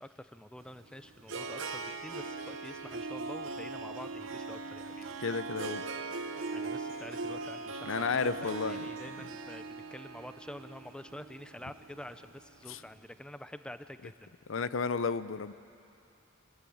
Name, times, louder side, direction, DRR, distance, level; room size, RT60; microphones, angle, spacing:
voice 1, 0.0-5.2 6.5-9.6 9.9-14.3, left 1 dB, 5° left, 11 dB, 0.5 m, -47 dB
Harp, 0.6-12.8, right 3 dB, 75° right, 1.0 m, -40 dB
voice 2, 5.2-5.8 7.8-8.8 12.7-12.8 14.5-15.5, left 5 dB, 75° left, 15 dB, 0.6 m, -32 dB
25.5 x 18.5 x 8.7 m, 2.8 s
head